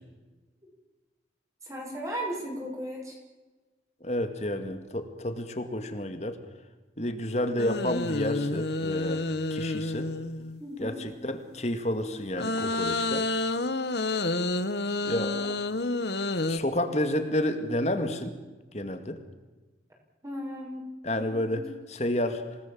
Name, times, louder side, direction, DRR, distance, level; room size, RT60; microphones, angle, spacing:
voice 1, 1.6-3.2 10.6-11.0 15.1-15.3 20.2-20.9 21.2-21.6, equal, 20° right, -1 dB, 7.0 m, -36 dB
voice 2, 4.0-6.4 7.0-9.2 9.5-10.1 10.8-13.3 15.0-15.6 16.5-18.4 18.7-19.2 21.0-21.6 21.9-22.6, left 1 dB, 40° left, 8 dB, 2.2 m, -30 dB
sound 1, 7.6-10.6 12.4-16.6, left 2 dB, 70° left, 1.3 m, -29 dB
27.0 x 18.5 x 7.6 m, 1.2 s
head